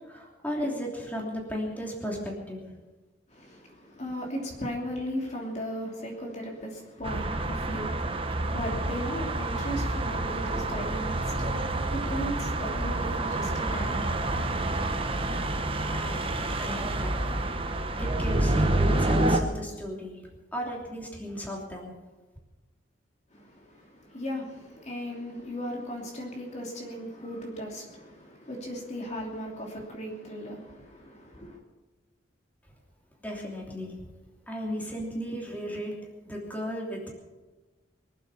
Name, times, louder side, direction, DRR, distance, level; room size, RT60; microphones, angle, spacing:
voice 1, 0.1-2.6 15.8-16.3 16.5-17.2 18.0-20.2 20.5-21.9 33.2-33.9 34.5-35.9 36.3-37.1, equal, 10° left, 3.0 m, -35 dB
voice 2, 3.3-14.5 23.3-31.6, equal, 40° left, 2.9 m, -37 dB
sound 1, 7.0-19.4, right 2 dB, 30° right, 1.2 m, -28 dB
23.5 x 8.5 x 6.9 m
head